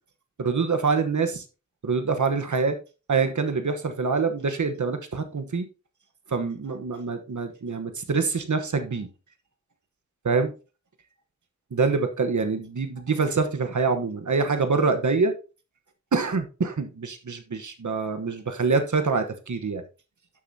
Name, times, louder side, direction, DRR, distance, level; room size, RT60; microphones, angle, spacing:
voice 1, 0.4-1.4 1.8-2.8 3.1-5.7 6.3-9.1 10.2-10.5 11.7-15.3 16.1-19.8, right 4 dB, 85° right, 1.1 m, -25 dB
11.5 x 7.0 x 2.8 m
wide cardioid pair, 60°, 29 cm